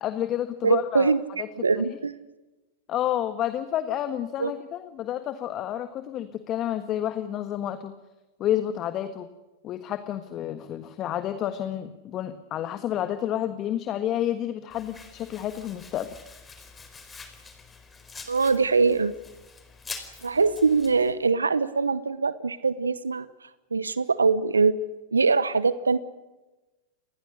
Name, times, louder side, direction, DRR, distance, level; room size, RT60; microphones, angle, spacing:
voice 1, 0.0-1.1 2.9-7.9 8.4-9.3 9.6-16.1, left 11 dB, 35° left, 10 dB, 1.4 m, -30 dB
voice 2, 0.6-1.2 1.5-2.1 4.4-4.5 18.3-19.1 20.2-24.8 25.1-26.0, right 4 dB, 85° right, 16 dB, 0.9 m, -23 dB
Domestic sounds home sounds, 14.7-21.1, left 4 dB, 15° left, 4.5 m, -45 dB
28.5 x 20.5 x 6.5 m, 1.1 s
figure-of-eight pair, 95°, 0 cm